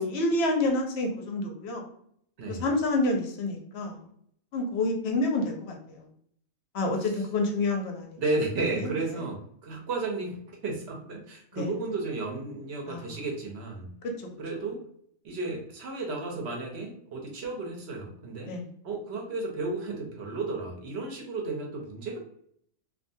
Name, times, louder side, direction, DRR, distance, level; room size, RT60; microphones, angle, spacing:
voice 1, 0.0-1.8 2.5-4.0 4.5-6.0 6.7-8.2 8.8-9.2 11.5-11.7 12.9-13.1 14.0-14.1 18.4-18.6, left 2 dB, 65° left, 2 dB, 0.7 m, -28 dB
voice 2, 8.2-13.9 14.4-14.8 15.2-18.5 18.8-22.2, right 3 dB, 60° right, 1 dB, 0.8 m, -33 dB
2.4 x 2.3 x 2.6 m, 0.66 s
omnidirectional pair, 1.4 m